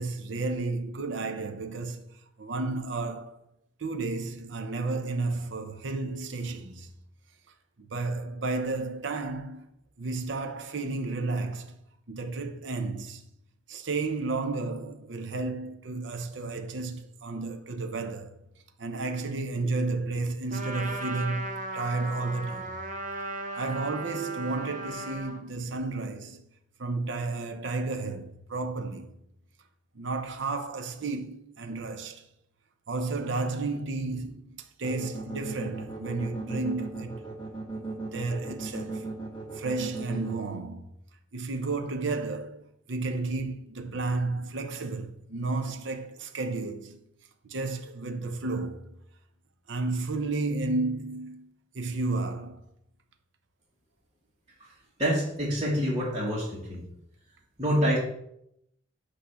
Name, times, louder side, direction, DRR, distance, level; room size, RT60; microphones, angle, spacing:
voice 1, 0.0-2.1 2.4-3.4 3.8-6.9 7.9-9.7 10.0-11.7 12.1-13.2 13.7-18.4 18.8-22.7 23.6-26.4 26.8-29.1 30.0-32.2 32.9-37.2 37.8-39.0 39.6-40.9 41.3-42.6 42.9-47.0 47.4-48.9 49.7-51.5 51.7-52.6, right 3 dB, 70° right, 0.7 m, -32 dB
Trumpet, 20.5-25.4, right 2 dB, 40° right, 1.0 m, -36 dB
sound 1, 34.8-40.3, right 3 dB, 25° left, 1.4 m, -36 dB
voice 2, 55.0-56.8 57.6-58.0, equal, 25° right, 1.9 m, -26 dB
8.4 x 3.3 x 6.2 m
head